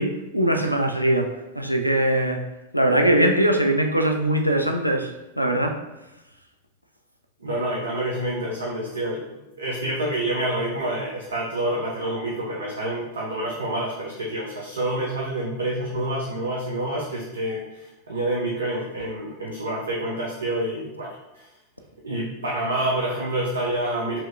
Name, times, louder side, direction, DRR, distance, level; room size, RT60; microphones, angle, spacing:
voice 1, 0.0-2.4 2.7-5.1 5.4-5.7, right 1 dB, 90° left, 4 dB, 0.4 m, -21 dB
voice 2, 7.4-9.2 9.6-21.5 22.0-24.2, right 1 dB, 75° right, -3 dB, 0.6 m, -28 dB
4.3 x 3.0 x 2.4 m, 1.0 s
figure-of-eight pair, 90°, 0 cm